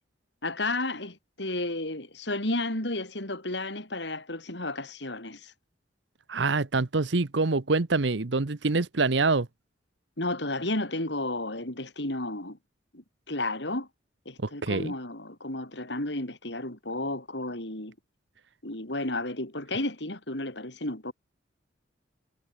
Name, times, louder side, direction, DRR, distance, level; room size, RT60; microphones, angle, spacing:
voice 1, 0.4-5.5 10.2-12.6 12.9-13.9 14.2-17.9 18.6-21.1, left 2 dB, 70° left, 5.1 m, -32 dB
voice 2, 6.3-9.5 14.4-14.9, right 3 dB, 75° right, 1.0 m, -25 dB
head